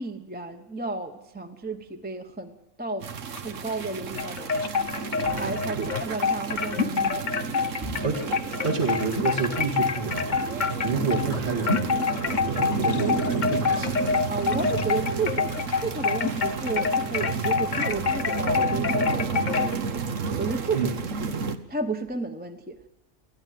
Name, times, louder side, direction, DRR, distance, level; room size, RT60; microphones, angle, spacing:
voice 1, 0.0-3.1 3.4-4.6 5.4-7.9 14.3-20.9 21.2-21.3 21.7-22.9, right 3 dB, 10° right, 6 dB, 0.9 m, -33 dB
sound 1, 3.0-21.6, right 5 dB, 75° right, 1.5 m, -31 dB
sound 2, 3.2-18.0, left 5 dB, 60° left, 1.3 m, -37 dB
sound 3, 4.2-11.3 11.6-19.7, left 5 dB, 40° left, 0.9 m, -27 dB
voice 2, 7.8-8.2 8.6-10.4 10.8-11.9 12.5-14.1 20.7-21.0, right 4 dB, 55° right, 1 dB, 2.4 m, -29 dB
20.0 x 14.0 x 9.2 m, 0.98 s
omnidirectional pair, 1.3 m